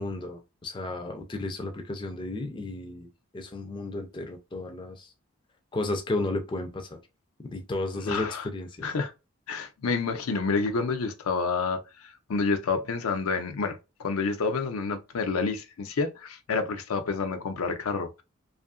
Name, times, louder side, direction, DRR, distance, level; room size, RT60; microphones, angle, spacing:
voice 1, 0.0-3.1 3.3-5.1 5.7-7.0 7.4-8.9, left 2 dB, 20° left, 0.3 m, -33 dB
voice 2, 8.1-8.4 8.8-9.1 9.5-18.2, left 4 dB, 90° left, 0.5 m, -29 dB
2.7 x 2.4 x 2.3 m
head